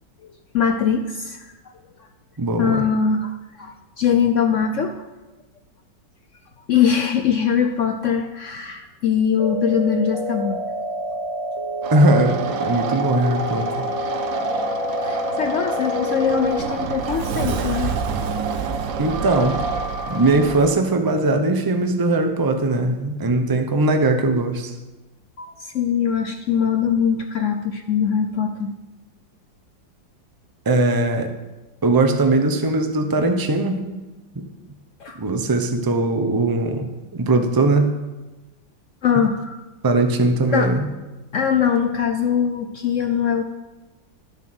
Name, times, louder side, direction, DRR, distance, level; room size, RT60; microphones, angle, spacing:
voice 1, 0.5-1.5 2.6-5.0 6.7-10.6 14.7-17.9 25.4-28.7 35.0-35.2 39.0-39.6 40.5-40.7 41.3-43.4, left 7 dB, 70° left, 6 dB, 0.7 m, -22 dB
voice 2, 2.4-2.8 11.9-13.8 19.0-19.6 20.1-24.7 30.7-31.3 31.8-33.8 34.3-34.4 35.2-37.9 39.8-40.8, right 2 dB, 30° right, 5 dB, 0.4 m, -20 dB
sound 1, 9.4-16.6, left 1 dB, 30° left, 0.6 m, -28 dB
sound 2, 11.8-20.8, right 6 dB, 85° right, 1.6 m, -29 dB
Sliding door, 15.9-20.7, right 5 dB, 60° right, 1.1 m, -29 dB
12.0 x 6.9 x 6.1 m, 1.1 s
omnidirectional pair, 2.0 m